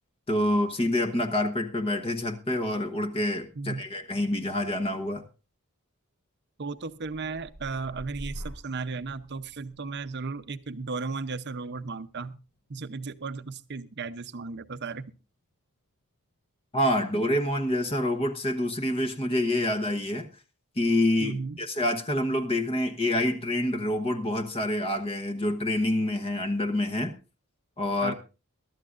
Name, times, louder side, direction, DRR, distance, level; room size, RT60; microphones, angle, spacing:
voice 1, 0.3-5.2 16.7-20.3 20.8-27.1 27.8-28.1, left 1 dB, 25° left, 7 dB, 1.0 m, -27 dB
voice 2, 6.6-12.4 12.7-15.1 21.2-21.6 28.0-28.1, right 4 dB, 50° right, 11 dB, 0.7 m, -35 dB
sound 1, 6.9-14.8 15.2-15.7, equal, 75° left, 4.3 m, -48 dB
22.0 x 12.5 x 2.5 m, 0.30 s
head